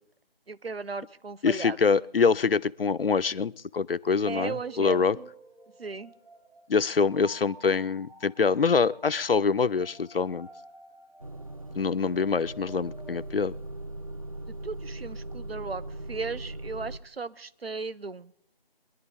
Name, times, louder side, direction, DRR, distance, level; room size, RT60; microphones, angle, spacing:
voice 1, 0.5-1.8 4.2-5.3 5.8-6.1 14.6-15.8 16.1-18.3, right 4 dB, 85° right, 0.7 m, -36 dB
voice 2, 1.4-5.2 6.7-10.5 11.7-13.5, left 5 dB, 70° left, 0.5 m, -25 dB
sound 1, 3.7-13.3, right 1 dB, 65° right, 5.5 m, -51 dB
Motor vehicle (road) / Engine starting / Idling, 11.2-17.0, right 1 dB, 35° right, 0.6 m, -39 dB
23.5 x 11.0 x 3.7 m
figure-of-eight pair, 165°, 29 cm